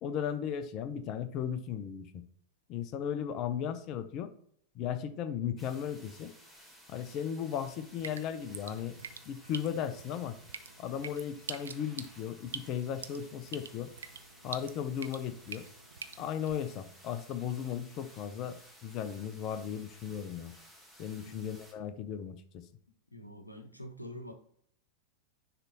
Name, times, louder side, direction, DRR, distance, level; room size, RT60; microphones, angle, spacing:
voice 1, 0.0-2.2 2.7-4.3 4.7-6.3 6.9-9.0 9.3-10.4 10.8-13.9 14.4-15.6 16.2-20.5 21.0-22.4, left 8 dB, 40° left, 11 dB, 0.7 m, -36 dB
Modular Noise Bits Raw File, 5.6-21.7, equal, 5° left, 1.7 m, -56 dB
Drip, 7.7-16.5, right 6 dB, 70° right, 0.5 m, -46 dB
voice 2, 21.2-21.5 23.1-24.3, equal, 85° left, 6 dB, 1.0 m, -46 dB
9.8 x 3.4 x 4.1 m, 0.65 s
figure-of-eight pair, 90°, 0 cm